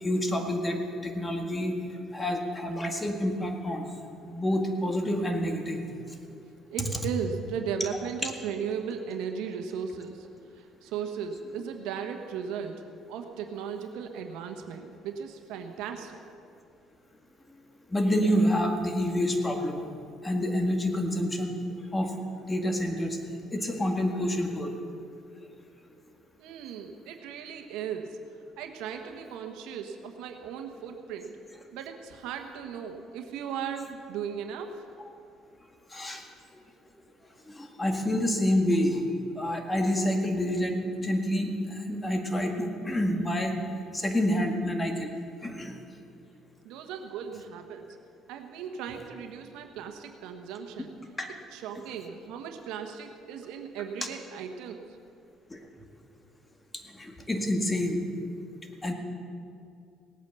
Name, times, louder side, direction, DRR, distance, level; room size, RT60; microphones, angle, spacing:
voice 1, 0.0-1.8 2.1-3.9 4.2-5.8 8.2-8.3 17.9-19.8 20.2-21.6 21.9-22.1 22.5-23.2 23.5-24.7 35.9-36.2 37.6-39.1 39.4-43.6 43.9-45.1 45.4-45.8 51.2-51.3 55.5-55.6 57.0-58.0 58.8-58.9, left 1 dB, 15° left, 4 dB, 1.8 m, -28 dB
voice 2, 6.7-10.3 10.6-12.8 13.1-16.2 26.4-28.2 28.6-31.4 31.7-34.7 46.6-47.9 48.3-50.9 51.5-54.8, right 7 dB, 85° right, 5 dB, 1.3 m, -36 dB
18.5 x 8.9 x 7.0 m, 2.5 s
cardioid pair, 110°, 0 cm